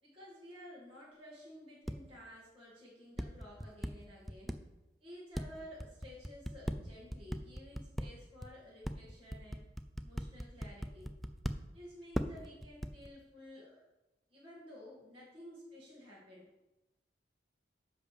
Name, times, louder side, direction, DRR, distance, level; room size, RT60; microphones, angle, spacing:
voice 1, 0.0-4.6 5.0-9.6 10.0-11.1 11.7-13.8 14.3-16.5, equal, 30° right, -7 dB, 2.2 m, -53 dB
sound 1, 1.9-2.0 3.2-4.5 5.3-8.1 8.4-8.5 8.8-11.5 12.1-13.1, equal, ahead, 0.3 m, -37 dB
10.0 x 3.4 x 6.6 m, 1.0 s
head